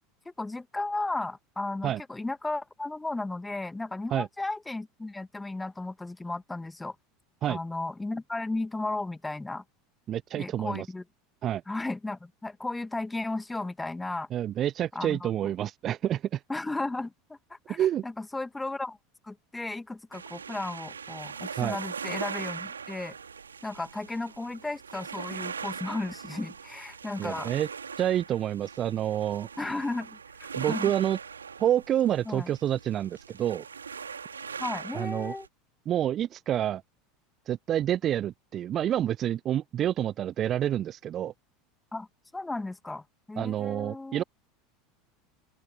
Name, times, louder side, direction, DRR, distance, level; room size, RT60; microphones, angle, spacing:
voice 1, 0.3-7.0 7.5-9.6 10.4-11.0 11.7-14.3 14.9-15.3 16.5-17.8 18.0-19.0 19.2-23.2 23.6-27.5 29.6-30.9 32.3-32.5 34.6-35.5 41.9-42.1 42.3-44.2, left 2 dB, 10° left, 2.0 m, -34 dB
voice 2, 10.1-10.9 11.4-11.6 14.3-16.4 17.7-18.0 21.6-21.8 27.2-27.7 28.0-29.5 30.6-31.2 31.6-33.6 34.9-35.3 35.9-36.8 37.5-41.3 43.4-44.2, right 11 dB, 35° right, 0.5 m, -28 dB
sound 1, 20.1-35.5, right 6 dB, 75° right, 3.0 m, -40 dB
open air
figure-of-eight pair, 75°, 0 cm